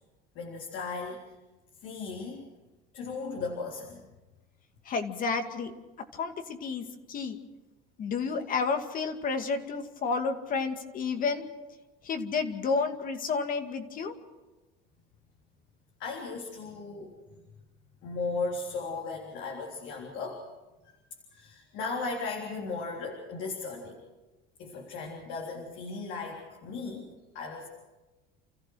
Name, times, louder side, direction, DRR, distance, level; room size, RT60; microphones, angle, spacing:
voice 1, 0.4-1.3 1.8-2.4 2.9-4.0 16.0-17.2 18.0-20.4 21.3-24.0 24.6-27.1 27.3-27.7, left 4 dB, 70° left, -1 dB, 3.6 m, -36 dB
voice 2, 4.9-5.7 6.1-7.4 8.0-11.5 12.0-14.1, left 4 dB, 45° left, 6 dB, 2.2 m, -31 dB
29.5 x 14.5 x 6.4 m, 1.1 s
cardioid pair, 120°, 20 cm